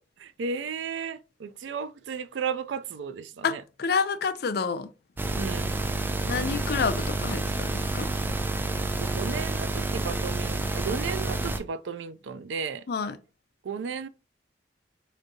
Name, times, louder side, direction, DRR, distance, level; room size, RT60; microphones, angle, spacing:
voice 1, 0.2-3.6 5.3-5.7 9.0-12.8 13.6-14.1, right 6 dB, 85° right, 0.4 m, -34 dB
voice 2, 3.4-4.9 6.2-8.1 12.9-13.1, left 5 dB, 60° left, 0.4 m, -28 dB
sound 1, 5.2-11.6, right 2 dB, 10° right, 0.3 m, -29 dB
4.9 x 2.6 x 2.7 m
head